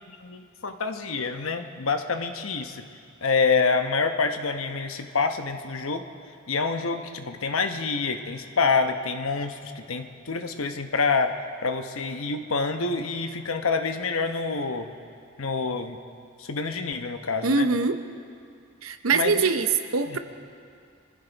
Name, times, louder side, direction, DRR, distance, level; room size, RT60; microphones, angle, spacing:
voice 1, 0.2-2.8 3.2-6.0 6.5-11.3 11.6-14.9 15.4-16.0 16.4-17.7 19.1-19.5 20.1-20.2, left 4 dB, 70° left, 6 dB, 1.0 m, -27 dB
voice 2, 17.4-18.0 18.8-20.2, right 4 dB, 70° right, 9 dB, 0.8 m, -23 dB
24.0 x 15.0 x 4.0 m, 2.3 s
head